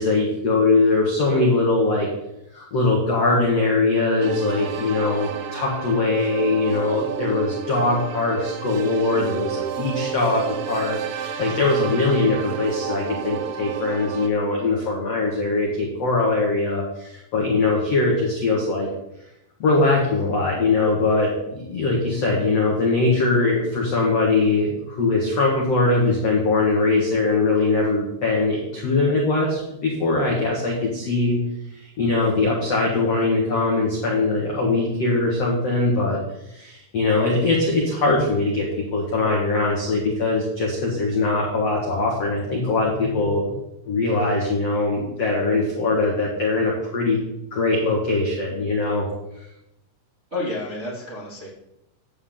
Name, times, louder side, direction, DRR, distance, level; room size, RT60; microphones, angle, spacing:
voice 1, 0.0-2.1 2.5-18.9 19.6-31.4 31.7-36.2 36.5-43.4 43.9-47.2 47.5-49.1, left 3 dB, 80° left, -3 dB, 1.4 m, -21 dB
sound 1, 4.2-14.3, right 8 dB, 90° right, 3.3 m, -31 dB
voice 2, 50.3-51.5, left 2 dB, 75° right, -7 dB, 0.6 m, -30 dB
11.5 x 8.6 x 3.8 m, 0.85 s
omnidirectional pair, 5.8 m